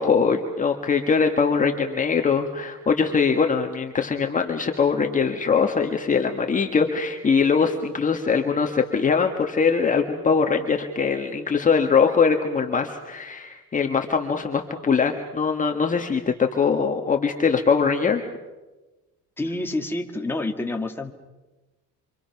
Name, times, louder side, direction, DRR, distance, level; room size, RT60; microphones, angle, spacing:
voice 1, 0.0-18.3, left 5 dB, 25° left, 3 dB, 1.5 m, -22 dB
voice 2, 19.4-21.1, left 2 dB, 5° left, 2 dB, 2.0 m, -28 dB
27.0 x 26.0 x 5.9 m, 1.1 s
cardioid pair, 140°, 32 cm